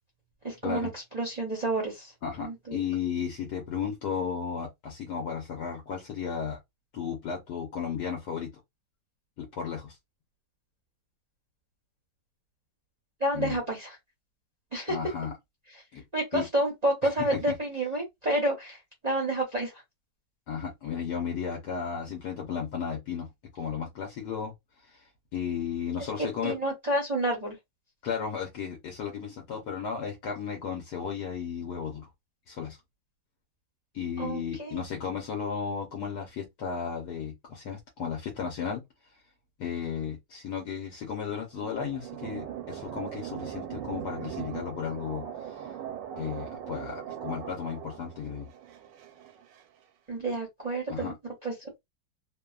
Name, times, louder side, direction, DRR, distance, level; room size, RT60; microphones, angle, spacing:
voice 1, 0.4-2.1 2.4-2.8 13.2-13.9 14.7-15.0 16.1-18.8 19.0-19.7 26.4-27.6 34.2-34.8 50.1-51.1 51.4-51.8, right 1 dB, 40° right, 0.6 m, -29 dB
voice 2, 2.2-6.6 6.9-8.5 9.4-10.0 13.3-13.6 14.9-15.4 15.9-16.0 16.3-16.5 17.0-17.6 20.5-23.3 23.5-24.5 24.8-26.5 28.0-32.1 32.5-32.8 33.9-38.8 39.6-45.7 46.2-48.5 50.9-51.1, left 7 dB, 70° left, 1.2 m, -34 dB
sound 1, 41.1-49.6, right 10 dB, 90° right, 1.3 m, -40 dB
2.9 x 2.2 x 2.3 m
omnidirectional pair, 1.9 m